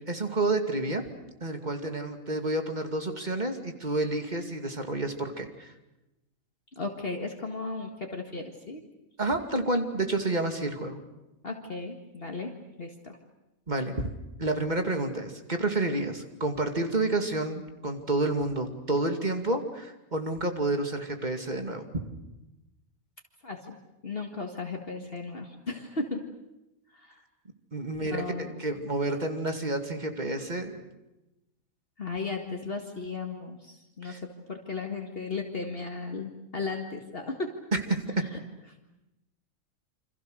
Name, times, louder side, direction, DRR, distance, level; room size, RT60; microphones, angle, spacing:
voice 1, 0.1-1.0 1.4-5.7 9.2-11.0 13.7-14.1 14.4-21.9 27.7-30.8 34.0-34.2 37.7-38.0, right 2 dB, 35° right, 5 dB, 2.6 m, -29 dB
voice 2, 6.8-8.8 11.4-12.5 12.8-13.2 23.4-23.8 24.0-26.2 26.9-27.2 28.0-28.5 32.0-34.2 34.5-37.6 38.2-38.4, left 3 dB, 45° left, 2 dB, 2.1 m, -35 dB
28.5 x 26.0 x 6.6 m, 0.96 s
omnidirectional pair, 1.4 m